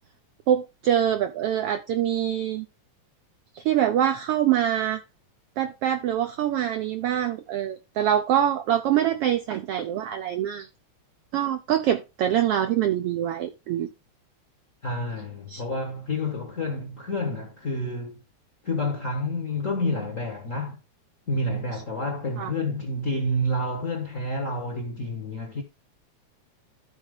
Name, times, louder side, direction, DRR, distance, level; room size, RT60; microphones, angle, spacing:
voice 1, 0.5-2.7 3.5-5.0 5.6-10.7 11.3-13.9 15.5-15.6 22.4-22.5, right 10 dB, 80° right, 1.3 m, -24 dB
voice 2, 14.8-18.2 18.6-20.8 21.3-25.6, left 1 dB, 45° left, 1.0 m, -29 dB
13.0 x 4.4 x 3.6 m
omnidirectional pair, 3.3 m